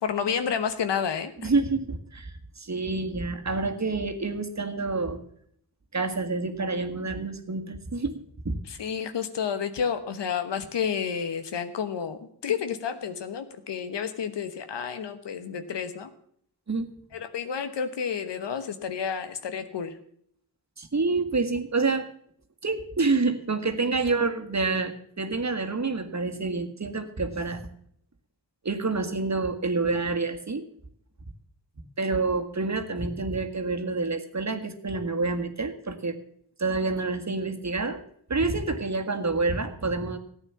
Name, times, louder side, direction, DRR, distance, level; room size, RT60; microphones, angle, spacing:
voice 1, 0.0-1.5 8.7-16.1 17.1-19.9, left 7 dB, 90° left, 10 dB, 1.2 m, -30 dB
voice 2, 1.4-5.2 5.9-8.1 8.4-8.6 16.7-16.9 20.8-22.1 22.6-27.6 28.6-30.7 32.0-36.2 36.6-38.0 38.3-40.2, right 3 dB, 40° right, 6 dB, 1.8 m, -28 dB
14.0 x 9.1 x 7.0 m, 0.66 s
cardioid pair, 45°, 41 cm